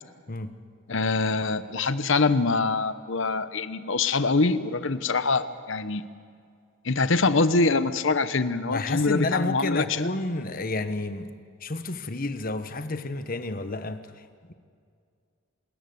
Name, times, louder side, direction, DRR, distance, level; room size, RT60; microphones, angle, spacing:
voice 1, 0.9-6.1 6.8-9.8, left 3 dB, 60° left, 13 dB, 0.9 m, -24 dB
voice 2, 8.7-11.3 11.6-14.5, left 2 dB, 40° left, 10 dB, 1.2 m, -30 dB
26.5 x 14.0 x 9.4 m, 2.2 s
head